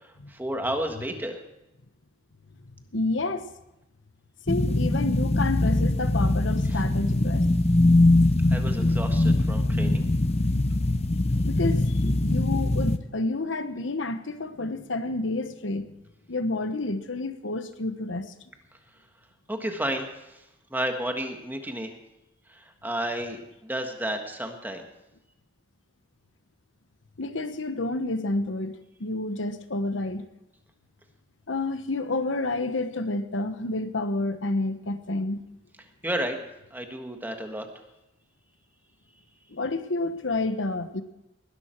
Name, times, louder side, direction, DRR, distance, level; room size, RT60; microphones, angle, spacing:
voice 1, 0.3-1.4 6.7-6.8 8.5-10.0 19.5-20.4 20.7-21.9 22.5-24.8 36.0-36.4 36.7-37.7, right 1 dB, 10° right, 4 dB, 1.5 m, -32 dB
voice 2, 2.9-3.5 4.5-7.4 11.4-15.9 16.3-18.3 27.2-30.3 31.5-35.4 39.5-41.0, left 2 dB, 80° left, 11 dB, 1.1 m, -29 dB
sound 1, 4.5-13.0, left 2 dB, 35° left, 0.8 m, -22 dB
20.0 x 11.5 x 4.5 m, 0.92 s
head